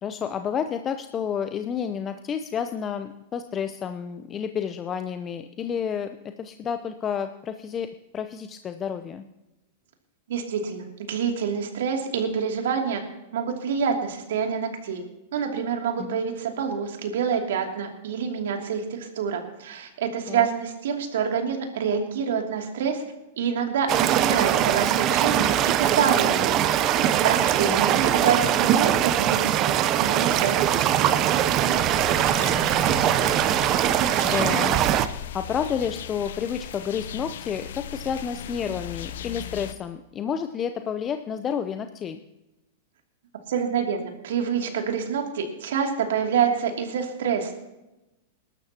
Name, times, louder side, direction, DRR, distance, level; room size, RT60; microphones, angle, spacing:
voice 1, 0.0-7.9 8.1-9.2 16.0-16.2 20.3-20.5 27.7-28.0 32.4-33.4 34.2-34.8 35.3-42.2, left 7 dB, 25° left, 8 dB, 0.7 m, -30 dB
voice 2, 10.3-13.0 13.3-15.0 15.3-23.0 23.4-25.5 25.8-26.7 27.2-31.4 43.5-47.5, right 7 dB, 75° right, 2 dB, 2.7 m, -27 dB
sound 1, 23.9-35.1, right 11 dB, 40° right, 0.7 m, -21 dB
sound 2, 31.7-39.7, left 9 dB, 75° left, 0.8 m, -38 dB
20.5 x 12.0 x 2.9 m, 0.97 s
hypercardioid pair, 115°, 0 cm